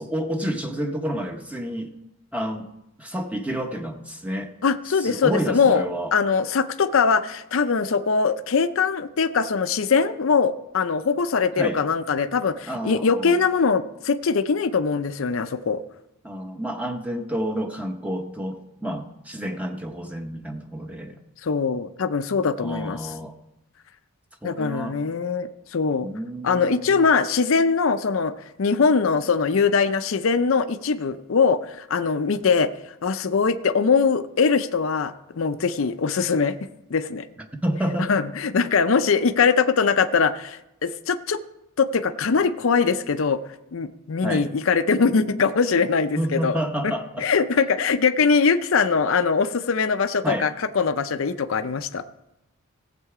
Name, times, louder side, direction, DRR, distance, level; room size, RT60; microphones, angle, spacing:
voice 1, 0.0-1.9 2.3-2.7 3.0-4.5 5.0-6.1 11.6-11.8 12.7-13.4 16.2-21.2 22.6-23.3 24.4-25.0 26.0-27.1 37.4-38.1 44.2-44.5 46.2-47.3 50.2-50.5, equal, 5° right, 4 dB, 0.8 m, -29 dB
voice 2, 4.6-5.8 6.1-15.8 21.4-23.0 24.4-26.1 26.4-28.3 28.6-32.7 33.0-36.6 36.9-37.3 38.1-41.4 41.8-43.4 43.7-46.6 46.8-46.9 47.2-52.0, left 5 dB, 70° left, 11 dB, 0.5 m, -22 dB
16.5 x 7.5 x 4.8 m, 0.91 s
head